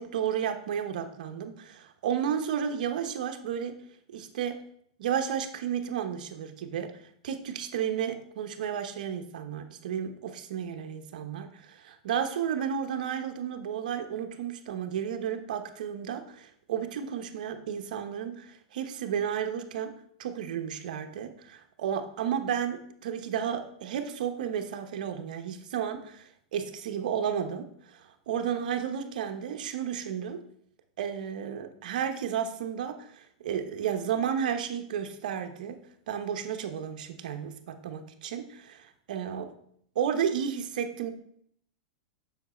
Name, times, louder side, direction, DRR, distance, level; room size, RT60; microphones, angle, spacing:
voice 1, 0.0-3.8 4.1-4.7 5.0-7.0 7.2-19.9 20.2-30.4 31.0-35.8 36.1-39.5 39.9-41.1, right 8 dB, 75° right, 7 dB, 1.0 m, -32 dB
7.2 x 6.0 x 4.3 m, 0.68 s
hypercardioid pair, 130°, 4 cm